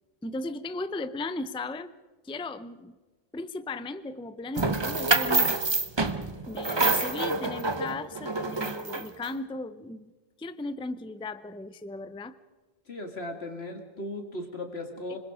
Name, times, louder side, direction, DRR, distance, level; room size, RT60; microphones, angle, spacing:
voice 1, 0.2-1.9 2.2-2.9 3.3-5.6 6.5-10.1 10.4-12.4 15.1-15.2, left 2 dB, 5° left, 13 dB, 0.5 m, -36 dB
sound 1, 4.6-9.3, right 3 dB, 25° right, 0.9 m, -27 dB
voice 2, 12.9-15.2, left 1 dB, 75° left, 4 dB, 2.5 m, -37 dB
25.5 x 21.5 x 5.0 m, 1.3 s
omnidirectional pair, 1.1 m